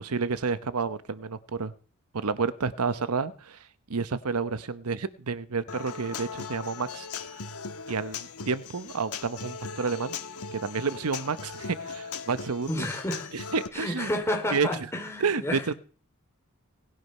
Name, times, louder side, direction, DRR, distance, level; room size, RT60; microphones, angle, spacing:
voice 1, 0.0-1.7 2.1-3.6 3.9-7.1 7.9-10.2 10.5-12.9 13.3-14.1 14.5-14.7 15.2-15.7, right 4 dB, 80° right, 0.9 m, -30 dB
Human voice / Acoustic guitar, 5.7-13.7, left 5 dB, 85° left, 1.4 m, -39 dB
voice 2, 12.7-13.3 13.7-15.7, left 1 dB, 10° left, 3.6 m, -31 dB
18.5 x 11.5 x 5.5 m
head